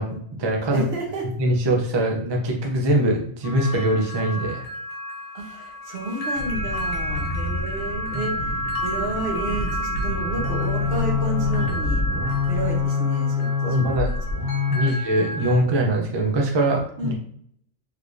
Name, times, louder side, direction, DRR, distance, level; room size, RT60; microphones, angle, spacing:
voice 1, 0.0-0.8 1.4-4.6 8.1-8.2 13.6-14.1 14.7-17.1, right 1 dB, 35° right, 0 dB, 0.4 m, -22 dB
voice 2, 0.7-1.3 5.3-12.0 12.5-14.4 14.7-14.9 17.0-17.1, right 2 dB, 60° right, 0 dB, 1.0 m, -31 dB
sound 1, 3.4-15.5, equal, 75° left, 1.1 m, -32 dB
sound 2, 6.4-12.8, equal, 55° left, 0.8 m, -31 dB
sound 3, 10.1-14.9, left 5 dB, 85° right, 1.2 m, -25 dB
3.4 x 3.1 x 2.5 m, 0.66 s
omnidirectional pair, 1.2 m